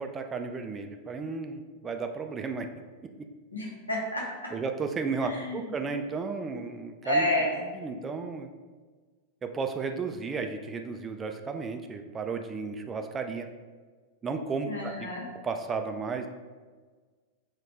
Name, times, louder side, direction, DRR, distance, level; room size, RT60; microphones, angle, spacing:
voice 1, 0.0-2.7 4.5-7.3 7.8-8.5 9.4-13.5 14.2-15.1 15.4-16.3, right 4 dB, 20° right, 6 dB, 0.3 m, -33 dB
voice 2, 3.5-4.2 5.2-5.7 7.0-7.7 14.7-15.2, left 1 dB, 80° left, -2 dB, 0.9 m, -29 dB
4.1 x 2.3 x 4.3 m, 1.4 s
figure-of-eight pair, 90°, 0 cm